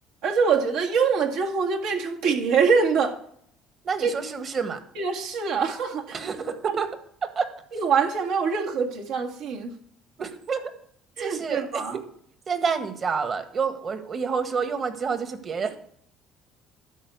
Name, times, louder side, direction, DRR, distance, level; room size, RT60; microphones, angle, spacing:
voice 1, 0.2-3.2 4.0-4.1 5.0-6.2 7.7-9.7 11.2-12.0, right 5 dB, 75° right, 0 dB, 1.9 m, -24 dB
voice 2, 3.8-4.8 6.1-6.9 7.2-7.5 10.2-10.7 11.2-12.0 12.5-15.8, right 5 dB, 40° right, 9 dB, 1.6 m, -28 dB
12.0 x 4.4 x 8.3 m, 0.67 s
supercardioid pair, 85°, 0 cm